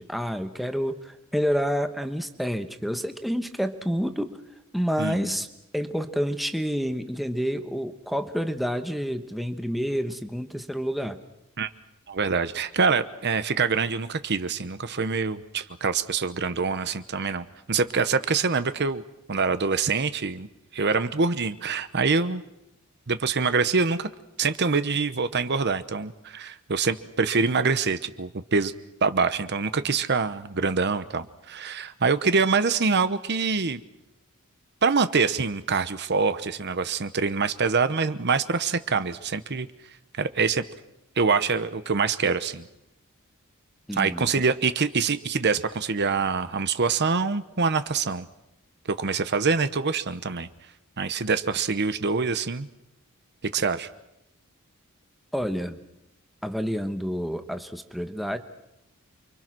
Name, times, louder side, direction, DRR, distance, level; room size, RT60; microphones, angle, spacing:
voice 1, 0.0-4.4 4.7-5.5 5.7-11.2 43.9-44.3 55.3-55.8 56.4-58.4, equal, ahead, 7 dB, 1.2 m, -28 dB
voice 2, 12.1-19.0 19.3-20.5 20.7-22.4 23.1-24.1 24.4-28.7 29.0-33.8 34.8-39.7 40.2-40.6 41.2-42.6 43.9-48.3 48.9-50.5 51.0-52.7 53.4-53.9, right 4 dB, 50° right, 12 dB, 1.0 m, -25 dB
29.0 x 24.5 x 6.2 m, 0.89 s
head